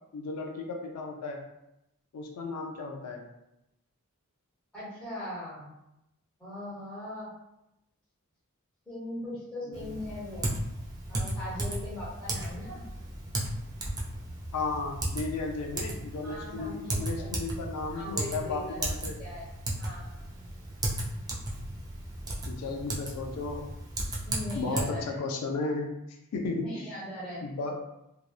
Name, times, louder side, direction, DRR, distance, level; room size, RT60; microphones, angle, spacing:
voice 1, 0.1-1.4 2.1-3.2 9.8-10.0 14.5-19.2 22.5-23.7 24.5-25.9 26.3-26.8 27.4-27.7, left 3 dB, 90° left, 2 dB, 0.4 m, -34 dB
voice 2, 4.7-5.7 6.4-7.3 8.9-10.6 11.1-12.8 16.2-17.6 17.9-19.5 19.8-20.2 24.3-25.2 26.6-27.4, left 1 dB, 5° left, -10 dB, 1.0 m, -40 dB
Typing, 9.7-24.8, right 1 dB, 15° right, 0.4 m, -35 dB
2.7 x 2.0 x 2.3 m, 0.86 s
head